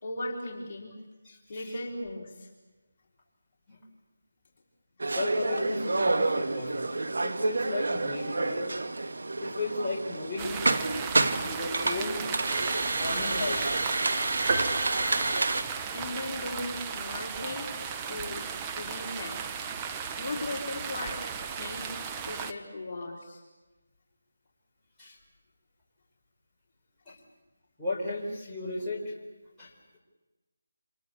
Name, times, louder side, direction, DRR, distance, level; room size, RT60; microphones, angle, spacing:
voice 1, 0.0-0.9 1.5-2.5 15.9-17.7 18.1-18.4 18.7-19.4 20.2-21.2 21.5-21.9 22.3-23.4, left 2 dB, 35° left, -3 dB, 4.3 m, -37 dB
voice 2, 1.2-1.8 3.7-3.8 5.1-6.9 7.2-8.7 9.4-12.3 12.9-13.8 25.0-25.2 27.1-27.2 27.8-29.1 29.6-29.7, left 2 dB, 5° left, -9 dB, 5.3 m, -35 dB
sound 1, 5.0-15.6, right 2 dB, 75° right, 2.0 m, -29 dB
sound 2, 10.4-22.5, right 6 dB, 15° right, 0.9 m, -36 dB
sound 3, 14.5-16.3, right 3 dB, 45° right, 2.3 m, -33 dB
28.0 x 27.0 x 7.1 m, 1.2 s
figure-of-eight pair, 165°, 0 cm